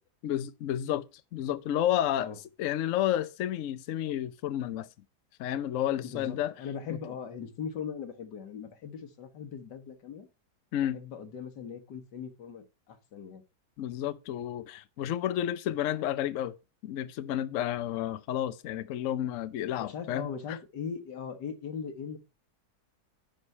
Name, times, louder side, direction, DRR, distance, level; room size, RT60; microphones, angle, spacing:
voice 1, 0.2-1.0 1.3-2.3 2.6-4.9 5.4-6.5 6.9-7.0 10.7-11.0 13.8-16.5 16.8-20.6, left 11 dB, 65° left, 0.9 m, -31 dB
voice 2, 6.1-10.3 10.9-13.4 19.8-22.2, left 6 dB, 85° left, 1.9 m, -40 dB
10.5 x 4.8 x 5.5 m
omnidirectional pair, 1.8 m